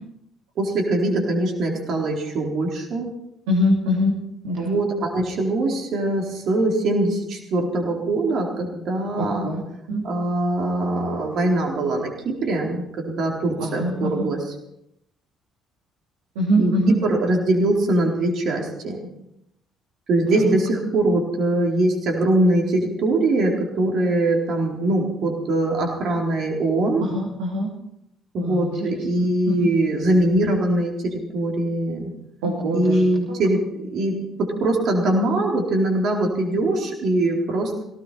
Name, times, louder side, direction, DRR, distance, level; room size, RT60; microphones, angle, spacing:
voice 1, 0.6-3.1 4.6-9.5 10.0-14.4 16.6-19.0 20.1-27.0 28.3-32.1 32.7-37.8, right 1 dB, 55° right, 0 dB, 4.4 m, -22 dB
voice 2, 3.5-4.1 4.4-4.8 9.2-9.6 9.9-10.0 13.6-14.3 16.3-17.0 20.3-20.4 27.0-27.7 28.4-29.7 32.4-33.4, equal, 75° right, -3 dB, 3.2 m, -24 dB
18.0 x 17.5 x 4.4 m, 0.80 s
figure-of-eight pair, 50°, 0 cm